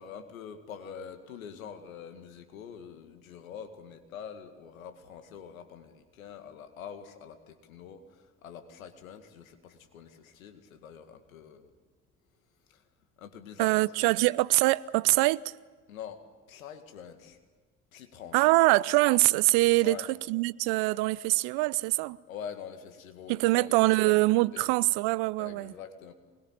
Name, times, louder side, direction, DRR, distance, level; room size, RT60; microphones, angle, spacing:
voice 1, 0.0-11.7 12.7-12.9 13.2-14.1 15.9-17.4 17.9-18.5 19.8-20.1 22.3-24.2 24.5-24.8 25.4-26.1, left 7 dB, 85° left, 2.1 m, -45 dB
voice 2, 13.6-15.4 18.3-20.0 20.3-22.2 23.3-25.7, right 21 dB, 70° right, 0.7 m, -24 dB
26.5 x 21.0 x 8.9 m
hypercardioid pair, 50°, 40 cm